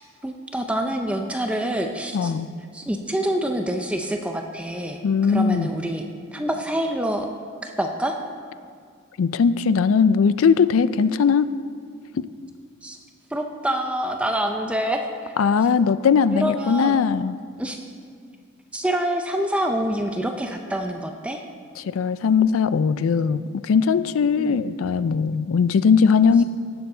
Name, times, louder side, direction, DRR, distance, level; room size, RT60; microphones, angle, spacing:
voice 1, 0.2-2.3 2.7-5.0 5.3-6.0 6.3-7.3 7.6-8.2 12.8-13.0 13.3-15.3 16.3-17.0 17.6-17.9 18.7-21.4 24.4-24.6, right 1 dB, 5° right, 4 dB, 0.4 m, -26 dB
voice 2, 2.1-2.5 5.0-5.7 9.2-11.5 12.2-12.3 15.4-17.4 21.8-26.4, left 6 dB, 70° left, 15 dB, 0.4 m, -19 dB
17.0 x 7.0 x 3.8 m, 2.2 s
head